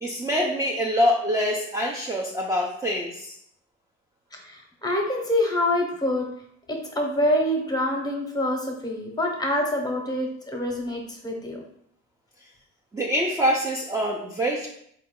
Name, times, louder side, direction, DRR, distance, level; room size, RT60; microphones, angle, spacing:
voice 1, 0.0-3.3 12.9-14.7, equal, 10° right, -1 dB, 0.4 m, -25 dB
voice 2, 4.4-6.3 6.7-11.6, left 1 dB, 15° left, 1 dB, 0.8 m, -26 dB
3.8 x 2.3 x 3.6 m, 0.71 s
cardioid pair, 105°, 31 cm